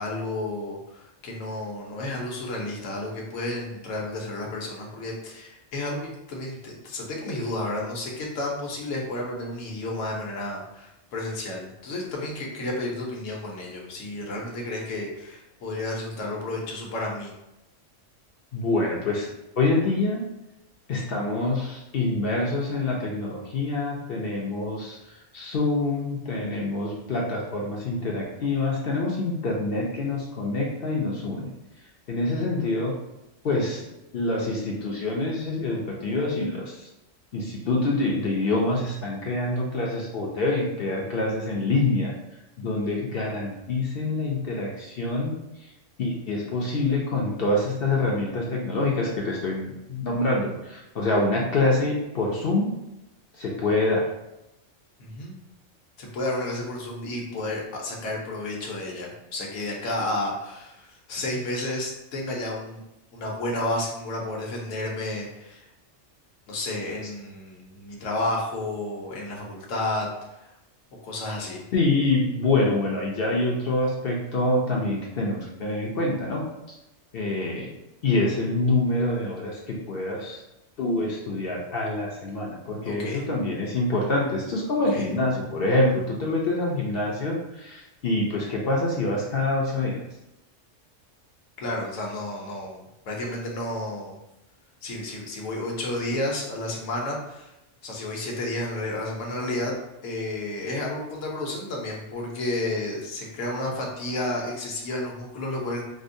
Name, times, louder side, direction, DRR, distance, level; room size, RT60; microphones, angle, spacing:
voice 1, 0.0-17.3 55.0-55.4 56.0-62.8 63.1-65.7 66.5-70.5 71.0-71.6 82.8-83.2 84.9-85.1 91.6-94.2 94.8-97.5 97.8-99.8 100.0-105.8, left 1 dB, 75° left, -1 dB, 1.1 m, -31 dB
voice 2, 18.5-19.3 19.6-20.2 20.9-25.0 25.3-31.5 32.1-32.9 33.4-33.9 34.1-36.9 37.3-42.1 42.6-45.7 46.0-52.7 53.3-54.0 71.7-76.4 76.7-76.8 77.1-77.7 78.0-80.4 80.8-90.0, left 2 dB, 60° left, -2 dB, 0.7 m, -26 dB
5.0 x 2.0 x 2.6 m, 0.93 s
omnidirectional pair, 1.3 m